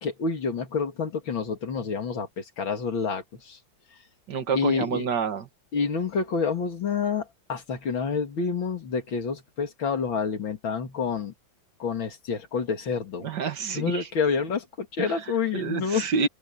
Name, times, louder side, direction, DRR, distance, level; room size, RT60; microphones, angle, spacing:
voice 1, 0.0-3.6 4.5-5.1 5.7-11.3 11.8-13.3 13.7-16.0, left 5 dB, 90° left, 3.1 m, -28 dB
voice 2, 4.3-5.5 13.2-14.1 15.0-15.2 15.5-16.3, right 5 dB, 65° right, 2.0 m, -28 dB
open air
omnidirectional pair, 2.1 m